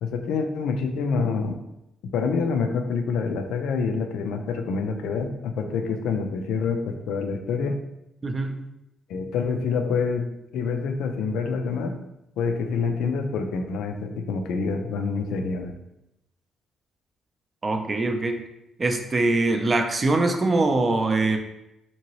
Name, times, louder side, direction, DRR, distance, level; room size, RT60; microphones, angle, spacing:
voice 1, 0.0-1.6 2.1-7.8 9.1-10.3 10.5-12.0 12.4-15.7, left 5 dB, 85° left, 6 dB, 0.3 m, -26 dB
voice 2, 8.2-8.6 17.6-18.4 18.8-21.4, right 2 dB, 30° right, 5 dB, 0.4 m, -23 dB
2.9 x 2.7 x 2.9 m, 0.87 s
cardioid pair, 90°, 0 cm